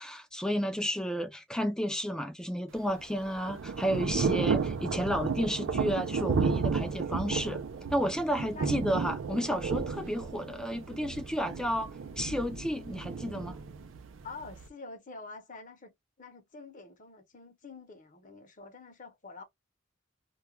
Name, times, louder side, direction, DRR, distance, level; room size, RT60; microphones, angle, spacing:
voice 1, 0.0-7.6 7.9-13.6, equal, 5° left, 0.4 m, -32 dB
Thunder / Rain, 2.7-14.7, right 5 dB, 80° right, 0.4 m, -33 dB
voice 2, 14.2-19.4, left 3 dB, 40° left, 0.8 m, -47 dB
2.3 x 2.2 x 2.9 m
head